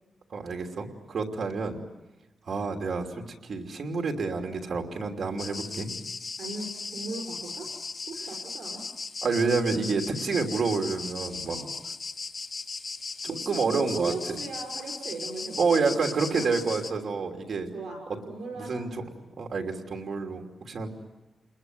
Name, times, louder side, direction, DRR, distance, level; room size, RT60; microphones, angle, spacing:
voice 1, 0.3-1.8 2.5-5.9 9.2-11.6 13.5-14.1 15.6-17.7 18.6-18.9 19.4-20.9, right 4 dB, 55° right, 3 dB, 3.0 m, -28 dB
sound 1, 5.4-16.9, left 4 dB, 45° left, 1.4 m, -37 dB
voice 2, 6.4-7.7 8.1-8.8 11.4-11.7 13.3-16.5 17.7-18.9, right 3 dB, 80° right, 3 dB, 6.0 m, -38 dB
29.5 x 21.0 x 9.3 m, 1.0 s
wide cardioid pair, 170°, 0 cm